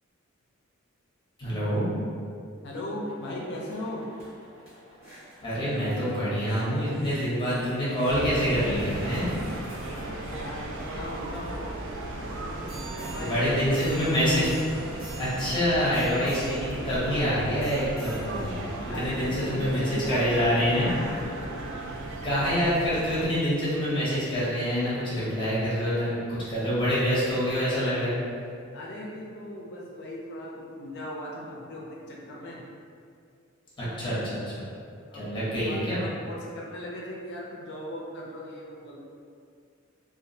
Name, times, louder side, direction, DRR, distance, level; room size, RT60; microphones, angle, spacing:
voice 1, 1.4-1.9 5.4-9.3 13.2-14.5 15.2-18.6 18.8-20.9 22.2-28.1 33.8-34.7 35.1-36.0, equal, 25° left, -10 dB, 0.8 m, -26 dB
voice 2, 2.6-4.0 9.9-14.1 18.9-21.6 28.7-32.6 35.1-39.0, left 1 dB, 55° left, -3 dB, 0.4 m, -38 dB
sound 1, 3.0-20.3 20.9-21.0, right 1 dB, 30° right, 0.9 m, -48 dB
sound 2, 8.1-23.3, right 2 dB, 60° right, 0.3 m, -36 dB
2.3 x 2.1 x 2.6 m, 2.3 s
head